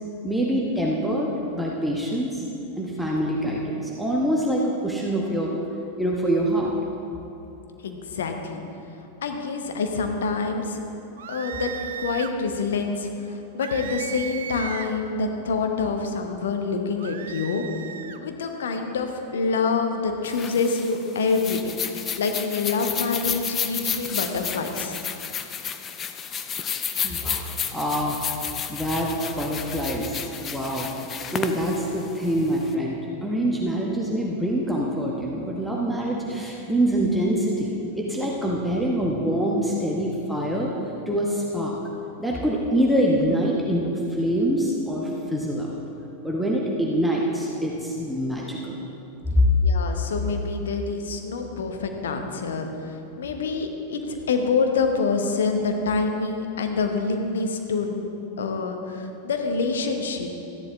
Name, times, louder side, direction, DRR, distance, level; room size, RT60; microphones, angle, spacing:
voice 1, 0.2-2.4 2.8-5.5 6.0-6.7 27.0-30.9 31.3-40.7 41.1-41.7 42.2-45.8 46.2-48.8 49.3-49.4 53.4-53.6, equal, ahead, -4 dB, 1.1 m, -25 dB
voice 2, 7.8-8.6 9.2-10.8 11.3-11.7 12.0-17.6 18.2-25.0 49.6-52.7 53.2-58.1 58.4-60.3, left 4 dB, 65° left, 5 dB, 1.0 m, -26 dB
sound 1, 11.2-12.4 13.6-15.0 17.0-18.2, right 9 dB, 60° right, 0.4 m, -36 dB
sound 2, 20.2-32.7, left 7 dB, 25° left, 0.5 m, -32 dB
13.5 x 10.5 x 3.6 m, 2.9 s
figure-of-eight pair, 90°, 0 cm